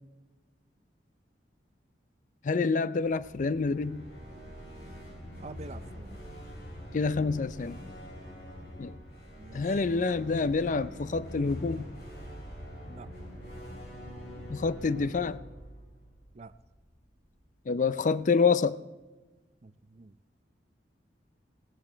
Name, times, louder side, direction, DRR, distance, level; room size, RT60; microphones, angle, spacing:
voice 1, 2.4-4.1 6.9-7.8 8.8-8.9 9.5-11.9 14.5-15.4 17.7-18.8, left 4 dB, 45° left, 0.5 m, -27 dB
sound 1, 3.0-17.0, equal, 60° left, 3.8 m, -44 dB
voice 2, 5.4-6.4 9.4-9.8 12.9-13.1 16.3-16.5 19.6-20.1, right 3 dB, 40° right, 0.5 m, -47 dB
16.5 x 11.5 x 4.5 m
head